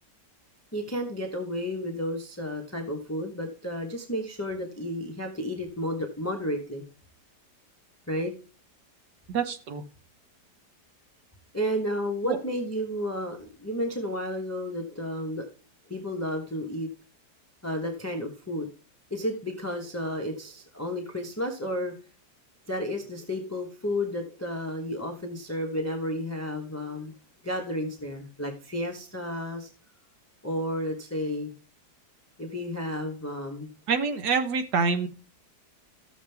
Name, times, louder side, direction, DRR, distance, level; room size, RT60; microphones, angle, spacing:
voice 1, 0.7-6.8 8.1-8.3 11.5-15.4 15.9-16.9 17.6-18.7 19.1-21.9 22.7-27.1 27.4-29.7 30.4-31.5 32.4-33.7, equal, 10° left, 2 dB, 0.9 m, -32 dB
voice 2, 9.3-9.8 12.2-12.4 33.9-35.1, right 5 dB, 70° right, 7 dB, 1.6 m, -26 dB
13.0 x 7.4 x 3.4 m, 0.36 s
omnidirectional pair, 1.9 m